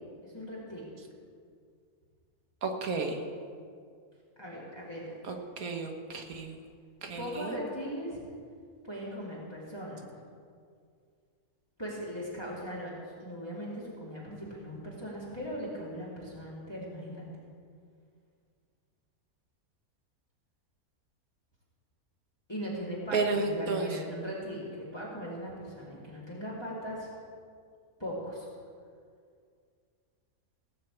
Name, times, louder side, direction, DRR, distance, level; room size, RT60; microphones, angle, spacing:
voice 1, 0.2-0.9 4.4-5.2 7.2-8.2 8.8-10.0 11.8-17.3 22.5-27.1 28.0-28.5, equal, 15° left, -7 dB, 2.7 m, -39 dB
voice 2, 2.6-3.2 5.3-6.6 7.0-7.6 23.1-23.9, right 3 dB, 75° right, 4 dB, 1.8 m, -32 dB
16.5 x 6.5 x 8.3 m, 2.2 s
omnidirectional pair, 1.5 m